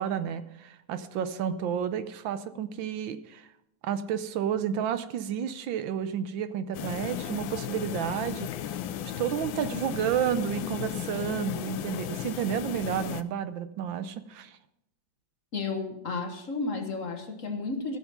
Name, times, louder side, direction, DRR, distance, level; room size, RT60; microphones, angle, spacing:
voice 1, 0.0-3.5 3.8-8.5 9.2-14.6, right 9 dB, 80° right, 12 dB, 1.5 m, -31 dB
sound 1, 6.7-13.2, left 11 dB, 85° left, 1.4 m, -35 dB
voice 2, 15.5-18.0, left 3 dB, 45° left, 5 dB, 1.3 m, -32 dB
15.0 x 6.9 x 5.4 m, 0.83 s
omnidirectional pair, 2.1 m